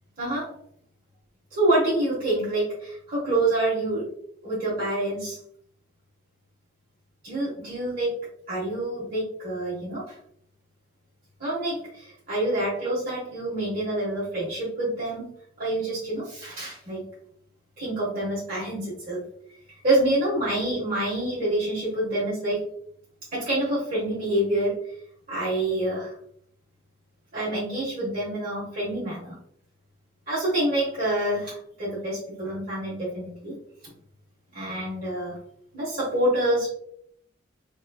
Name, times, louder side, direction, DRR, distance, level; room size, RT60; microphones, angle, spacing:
voice 1, 0.2-0.5 1.5-4.1 4.4-5.4 7.2-8.1 8.5-10.1 11.4-15.3 15.6-17.0 17.8-19.2 19.8-22.7 23.3-24.8 25.3-26.1 27.3-29.4 30.3-33.5 34.5-35.3 35.7-36.7, right 1 dB, 50° right, -9 dB, 1.4 m, -27 dB
3.9 x 3.2 x 2.3 m, 0.67 s
head